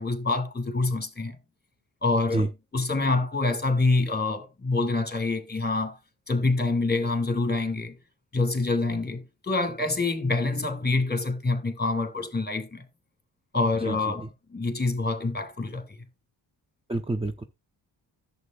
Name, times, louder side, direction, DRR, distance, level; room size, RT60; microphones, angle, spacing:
voice 1, 0.0-1.4 2.0-6.0 6.3-8.0 8.3-12.9 13.5-15.8, left 3 dB, 20° left, 2.4 m, -26 dB
voice 2, 13.8-14.3 16.9-17.4, right 2 dB, 10° right, 0.9 m, -28 dB
11.0 x 7.8 x 2.5 m
supercardioid pair, 40°, 49 cm